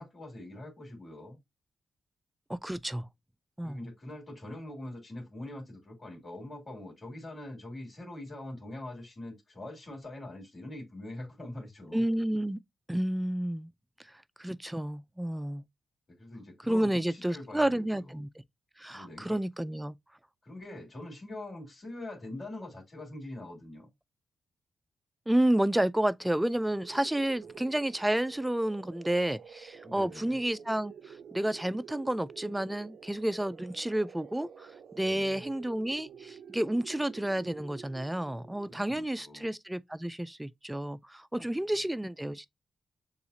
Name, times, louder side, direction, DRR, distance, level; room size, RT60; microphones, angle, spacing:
voice 1, 0.0-1.4 3.6-12.1 16.2-18.2 18.9-19.4 20.4-23.9 29.8-30.4 35.0-35.5 38.7-39.5 41.5-41.6, left 1 dB, 40° left, 2.6 m, -43 dB
voice 2, 2.5-3.1 3.6-3.8 11.9-12.6 12.9-13.7 14.4-15.6 16.7-18.3 18.8-20.0 25.3-34.7 35.0-42.5, right 1 dB, 10° right, 0.3 m, -30 dB
sound 1, 26.6-39.4, right 7 dB, 80° right, 0.5 m, -50 dB
6.9 x 2.4 x 2.7 m
cardioid pair, 80°, 0 cm